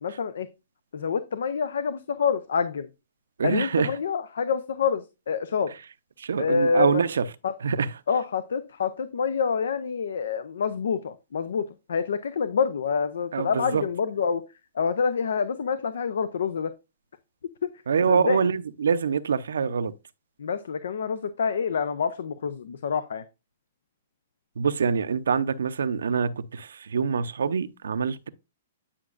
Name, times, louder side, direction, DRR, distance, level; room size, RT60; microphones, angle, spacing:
voice 1, 0.0-0.5 0.9-2.9 3.4-5.7 6.4-7.0 7.4-7.5 8.1-14.4 14.7-16.7 18.1-18.5 20.4-23.2, left 6 dB, 80° left, 0.6 m, -27 dB
voice 2, 3.4-3.9 6.2-7.2 7.6-7.9 13.3-13.8 17.9-19.9 24.6-28.3, right 6 dB, 85° right, 0.6 m, -25 dB
10.0 x 5.9 x 2.5 m
hypercardioid pair, 145°, 0 cm